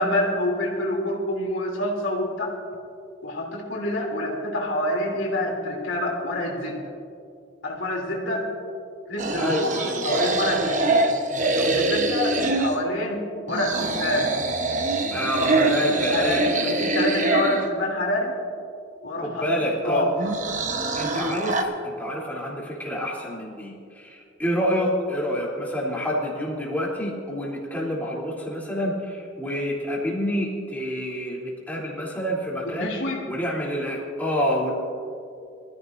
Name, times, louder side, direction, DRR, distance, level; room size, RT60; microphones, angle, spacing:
voice 1, 0.0-2.5 3.2-6.8 7.6-8.5 9.1-10.8 11.4-14.3 15.6-18.4 19.0-19.4 19.8-20.1 32.6-33.2, left 1 dB, 80° left, -2 dB, 3.0 m, -27 dB
sound 1, 9.2-12.8 13.5-17.7 20.2-21.6, right 2 dB, 40° right, 1.1 m, -24 dB
voice 2, 9.4-10.2 15.1-16.7 19.2-20.1 20.9-34.7, equal, 10° left, -5 dB, 3.3 m, -28 dB
25.0 x 15.0 x 2.7 m, 2.4 s
head